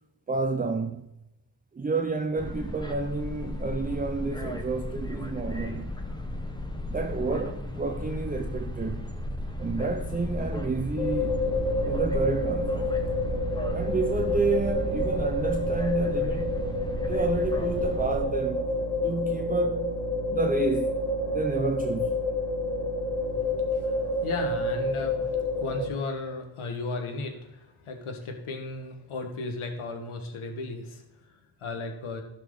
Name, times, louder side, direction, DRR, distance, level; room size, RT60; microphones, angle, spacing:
voice 1, 0.3-1.1 1.7-5.9 6.9-9.1 9.6-11.5 11.9-13.0 13.7-16.6 17.0-18.7 19.0-20.0 20.3-20.9 21.3-22.1, right 3 dB, 20° right, 0.4 m, -30 dB
sound 1, 2.4-18.2, left 1 dB, 10° left, 1.0 m, -35 dB
sound 2, 11.0-25.9, left 2 dB, 40° left, 3.4 m, -28 dB
voice 2, 23.2-32.2, left 3 dB, 85° left, 1.6 m, -36 dB
15.5 x 6.0 x 3.9 m
wide cardioid pair, 165°, 48 cm